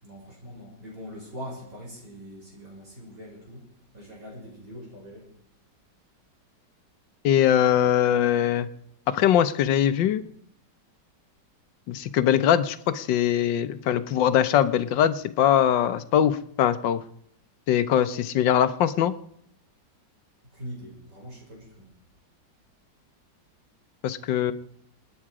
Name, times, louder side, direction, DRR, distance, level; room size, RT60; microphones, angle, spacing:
voice 1, 0.0-3.7 3.9-5.3 20.5-21.9, equal, 50° right, -2 dB, 6.3 m, -42 dB
voice 2, 7.2-8.7 9.1-10.2 11.9-17.0 17.7-19.1 24.0-24.5, left 10 dB, 80° left, 12 dB, 1.5 m, -22 dB
27.5 x 9.9 x 4.9 m, 0.68 s
omnidirectional pair, 2.0 m